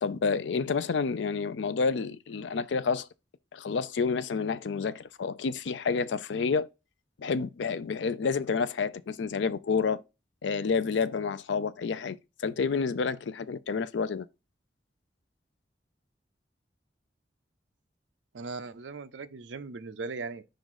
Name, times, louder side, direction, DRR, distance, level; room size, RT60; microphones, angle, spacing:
voice 1, 0.0-3.1 3.5-6.7 7.2-10.0 10.4-14.3, left 5 dB, 85° left, 0.4 m, -29 dB
voice 2, 18.3-20.4, right 4 dB, 85° right, 0.5 m, -38 dB
5.2 x 3.8 x 4.8 m
head